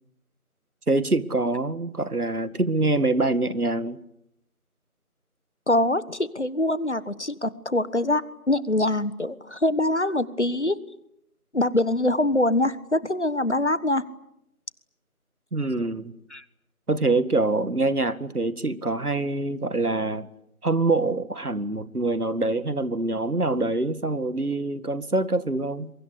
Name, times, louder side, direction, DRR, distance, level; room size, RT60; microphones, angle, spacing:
voice 1, 0.9-4.0 15.5-16.1 16.9-20.3 20.6-25.9, right 2 dB, 85° right, 14 dB, 2.1 m, -25 dB
voice 2, 5.7-10.8 11.5-14.0 16.3-16.4, left 1 dB, 50° left, 17 dB, 1.4 m, -24 dB
27.5 x 23.5 x 8.5 m, 0.80 s
figure-of-eight pair, 175°, 44 cm